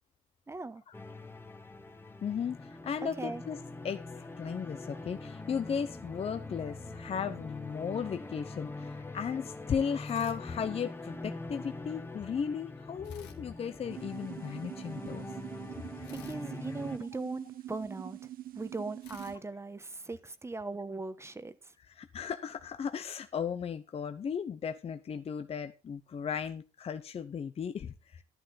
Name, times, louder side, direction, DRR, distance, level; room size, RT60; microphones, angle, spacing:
voice 1, 0.5-0.8 3.0-3.4 16.2-18.2 18.5-21.5, right 3 dB, 15° right, 1.1 m, -39 dB
sound 1, 0.9-17.0, left 2 dB, 15° left, 1.4 m, -43 dB
voice 2, 2.2-3.6 3.8-15.4 16.0-16.1 21.8-28.2, left 7 dB, 35° left, 0.8 m, -36 dB
sound 2, 10.0-11.2 13.0-14.4 16.0-17.7 19.0-20.6, left 8 dB, 85° left, 2.4 m, -57 dB
sound 3, 13.9-19.4, right 13 dB, 60° right, 0.8 m, -45 dB
11.5 x 11.0 x 4.2 m
cardioid pair, 110°, 17 cm